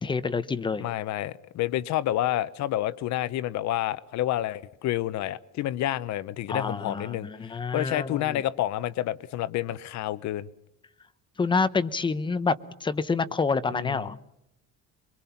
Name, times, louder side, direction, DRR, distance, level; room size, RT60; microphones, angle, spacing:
voice 1, 0.0-0.8 6.5-8.4 11.4-12.6 12.8-14.2, left 4 dB, 15° left, 13 dB, 0.8 m, -27 dB
voice 2, 0.8-10.5 13.7-14.1, left 13 dB, 65° left, 17 dB, 0.9 m, -29 dB
24.5 x 23.5 x 5.8 m, 0.83 s
cardioid pair, 165°, 31 cm